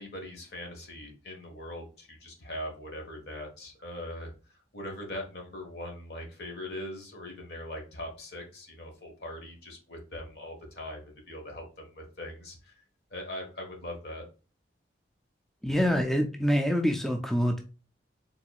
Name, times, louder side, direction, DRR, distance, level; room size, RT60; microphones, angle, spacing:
voice 1, 0.0-4.3 4.7-12.7 13.1-14.2, left 1 dB, 60° left, 1 dB, 1.4 m, -41 dB
voice 2, 15.6-17.6, equal, ahead, 3 dB, 0.3 m, -26 dB
4.4 x 3.8 x 2.3 m, 0.35 s
head